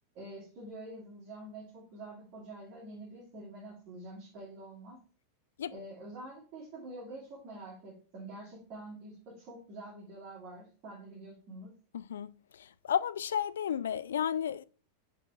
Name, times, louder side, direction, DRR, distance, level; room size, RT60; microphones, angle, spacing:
voice 1, 0.1-5.0 5.7-11.7, right 2 dB, 40° right, 2.6 m, -46 dB
voice 2, 11.9-14.6, left 9 dB, 65° left, 0.3 m, -33 dB
7.4 x 4.2 x 3.5 m
figure-of-eight pair, 90°, 0 cm